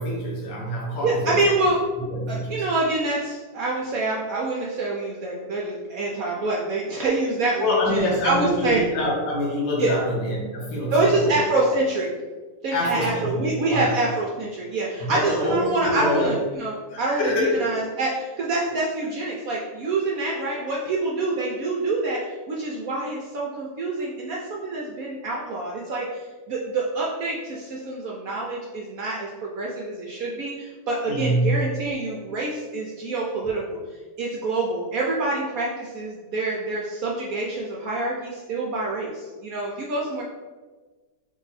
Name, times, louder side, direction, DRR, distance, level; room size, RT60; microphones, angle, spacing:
voice 1, 0.0-1.4 2.1-2.6 7.6-11.7 12.7-13.9 15.0-16.3 16.9-17.6 31.1-31.5, left 1 dB, 75° left, -2 dB, 1.7 m, -25 dB
voice 2, 1.0-1.8 2.3-8.8 9.8-10.0 10.9-12.1 12.6-33.8 34.2-40.2, right 2 dB, 70° right, -3 dB, 0.8 m, -26 dB
3.7 x 2.7 x 4.0 m, 1.3 s
omnidirectional pair, 2.0 m